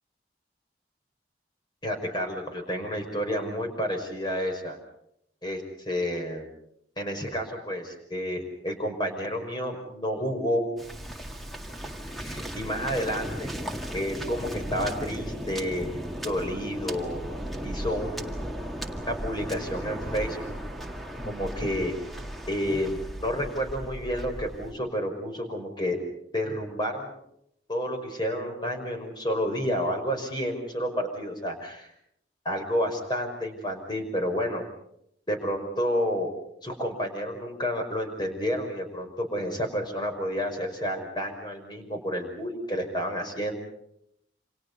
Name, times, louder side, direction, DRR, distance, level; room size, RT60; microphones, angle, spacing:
voice 1, 1.8-4.8 5.4-6.5 7.0-10.6 12.2-13.5 13.9-15.9 16.2-17.2 17.6-18.5 19.1-20.6 21.2-22.0 22.5-26.0 26.3-27.2 27.7-31.9 32.4-34.7 35.3-36.3 36.6-43.5, equal, 25° left, 4 dB, 5.5 m, -30 dB
Waves surf, 10.8-24.7, equal, ahead, 2.0 m, -36 dB
29.0 x 27.5 x 5.5 m, 0.75 s
head